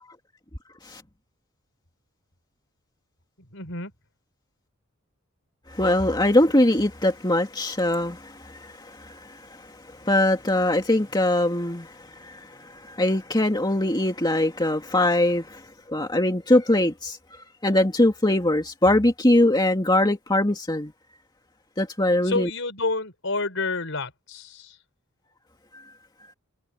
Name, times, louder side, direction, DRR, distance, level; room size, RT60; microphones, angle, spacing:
voice 1, 3.5-3.9 22.2-24.8, left 3 dB, 65° left, 5.7 m, -29 dB
voice 2, 5.7-15.6 15.9-17.2 17.6-20.9 21.8-22.5, left 1 dB, 20° left, 2.2 m, -22 dB
head